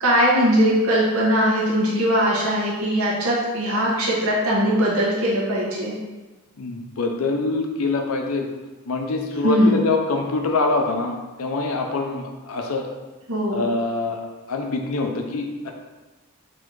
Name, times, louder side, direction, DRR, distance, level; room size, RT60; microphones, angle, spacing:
voice 1, 0.0-5.9 9.4-9.7 13.3-13.6, equal, 80° right, -4 dB, 1.1 m, -20 dB
voice 2, 6.6-8.5 8.9-12.9 13.5-14.2 14.5-15.7, left 3 dB, 75° left, 3 dB, 0.6 m, -24 dB
4.2 x 2.8 x 4.5 m, 1.2 s
head